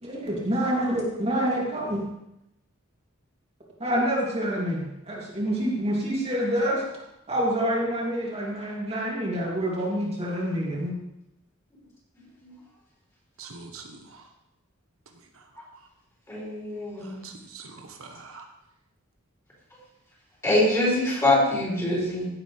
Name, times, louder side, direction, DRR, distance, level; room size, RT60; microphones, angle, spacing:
voice 1, 0.0-2.0 3.8-6.8 7.3-10.9, equal, 30° right, -4 dB, 2.8 m, -27 dB
voice 2, 13.4-14.3 15.3-15.4 17.0-18.4, right 4 dB, 85° right, 4 dB, 1.3 m, -44 dB
voice 3, 16.3-17.2 20.4-22.3, left 1 dB, 15° left, -6 dB, 4.7 m, -24 dB
16.0 x 8.1 x 3.4 m, 0.87 s
head